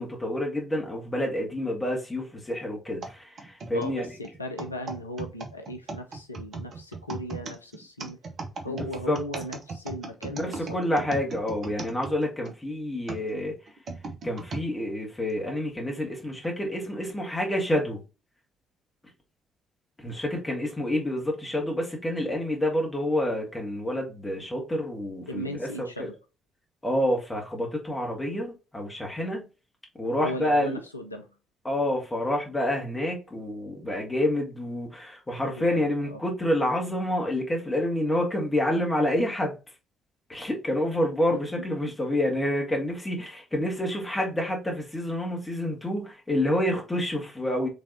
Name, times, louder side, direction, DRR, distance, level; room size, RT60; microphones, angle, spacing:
voice 1, 0.0-4.1 8.7-9.2 10.3-13.5 14.2-18.0 20.0-26.1 26.8-29.5 30.0-30.8 31.7-39.5 40.3-47.7, left 1 dB, 15° left, 1.8 m, -28 dB
sound 1, 3.0-12.5 13.1-14.7 15.3-15.4 16.2-16.5, right 3 dB, 45° right, 0.9 m, -38 dB
voice 2, 3.7-8.2 8.6-11.1 25.3-26.1 30.1-31.3 35.4-36.2 41.3-41.4 41.8-41.9, equal, 85° left, 0.4 m, -37 dB
5.3 x 3.4 x 2.7 m
figure-of-eight pair, 45°, 0 cm